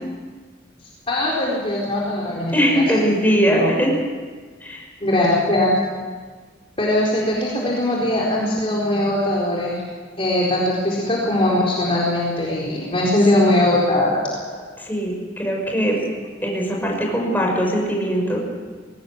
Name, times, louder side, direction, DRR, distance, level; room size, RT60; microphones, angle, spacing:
voice 1, 1.1-2.9 3.5-3.7 5.0-5.8 6.8-9.8 10.2-14.2 14.5-14.6, left 1 dB, 30° left, -4 dB, 4.2 m, -20 dB
voice 2, 2.5-3.9 4.6-4.8 13.4-13.7 14.8-16.0 16.4-18.4, equal, 10° left, -1 dB, 5.9 m, -21 dB
22.0 x 18.0 x 9.7 m, 1.5 s
head